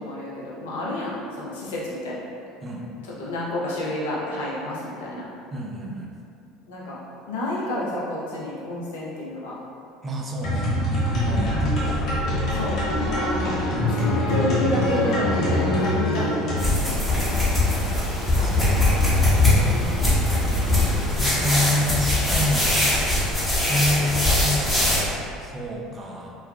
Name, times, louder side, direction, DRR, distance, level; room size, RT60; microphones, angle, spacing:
voice 1, 0.0-2.2 3.2-5.3 6.7-7.0 7.2-9.5 11.3-11.5 12.5-13.6 13.9-16.8 18.3-19.3 19.7-20.1, left 1 dB, 75° left, -6 dB, 0.6 m, -30 dB
voice 2, 5.5-6.1 10.0-12.1 17.1-18.0 18.4-19.2 19.6-20.3 20.9-22.7 23.7-26.3, left 1 dB, 30° right, -1 dB, 0.4 m, -29 dB
sound 1, 10.4-16.7, left 1 dB, 55° left, 1.0 m, -23 dB
sound 2, 16.6-25.0, left 1 dB, 5° left, 1.0 m, -21 dB
3.0 x 2.2 x 2.3 m, 2.5 s
hypercardioid pair, 70°, 0 cm